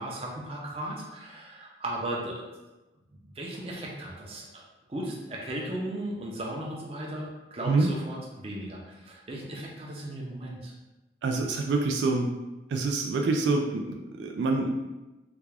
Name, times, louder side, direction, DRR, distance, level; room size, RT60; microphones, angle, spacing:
voice 1, 0.0-2.4 3.1-4.6 4.9-10.7, right 1 dB, 30° right, -2 dB, 0.6 m, -36 dB
voice 2, 11.2-12.3 12.7-14.8, right 3 dB, 75° right, 2 dB, 0.3 m, -26 dB
3.4 x 2.3 x 3.3 m, 1.1 s
head